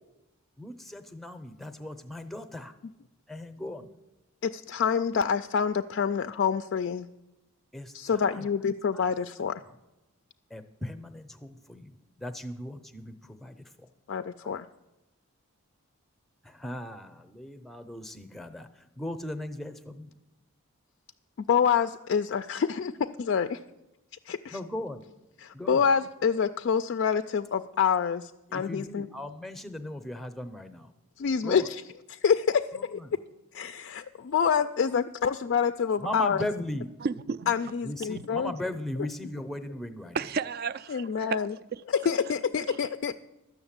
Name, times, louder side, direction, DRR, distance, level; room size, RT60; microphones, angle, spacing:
voice 1, 0.6-2.7 3.3-3.9 7.7-8.5 8.9-9.0 9.6-9.8 10.5-13.9 14.4-14.5 16.4-20.1 24.5-25.1 25.5-25.9 28.5-30.9 31.4-31.7 32.7-33.2 36.0-36.9 37.8-40.2, left 1 dB, ahead, 0.6 m, -38 dB
voice 2, 4.4-7.1 7.9-9.6 14.1-14.7 21.4-23.6 24.3-24.6 25.4-29.1 31.2-31.8 32.1-33.0 33.5-36.4 37.5-38.5 39.0-39.1 40.9-41.5 41.9-43.1, left 6 dB, 55° left, 0.3 m, -27 dB
voice 3, 37.0-37.5 40.1-41.4 41.7-41.8 42.6-42.8, right 5 dB, 45° right, 0.3 m, -32 dB
12.0 x 6.5 x 8.8 m
head